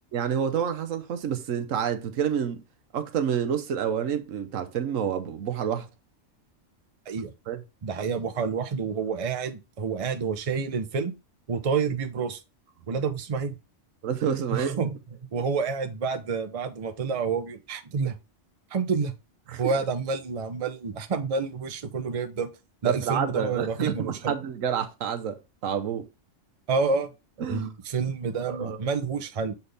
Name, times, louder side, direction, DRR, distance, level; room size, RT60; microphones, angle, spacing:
voice 1, 0.1-2.6 2.9-5.9 7.5-7.6 14.0-14.8 19.5-19.7 22.8-26.1 27.4-27.7 28.5-28.8, right 8 dB, 90° right, 1.2 m, -28 dB
voice 2, 7.8-11.1 11.5-12.4 12.9-13.6 14.5-15.0 15.3-18.2 18.7-19.1 19.6-22.5 22.8-24.3 26.7-27.1 27.4-29.6, right 5 dB, 35° right, 0.7 m, -28 dB
6.8 x 4.1 x 3.4 m
omnidirectional pair, 1.3 m